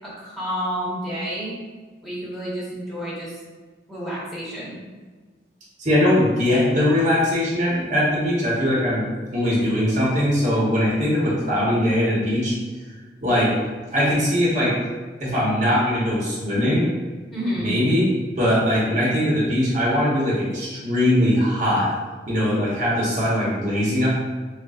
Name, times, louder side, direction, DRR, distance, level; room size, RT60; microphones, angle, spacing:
voice 1, 0.0-1.6 2.0-3.4 3.9-4.8 17.3-17.7, equal, ahead, -9 dB, 1.1 m, -29 dB
voice 2, 5.8-12.5 13.2-13.6 13.9-14.8 15.2-16.9 17.6-18.0 18.4-21.9 22.3-24.1, left 1 dB, 40° right, -6 dB, 1.0 m, -21 dB
6.5 x 2.2 x 2.4 m, 1.4 s
head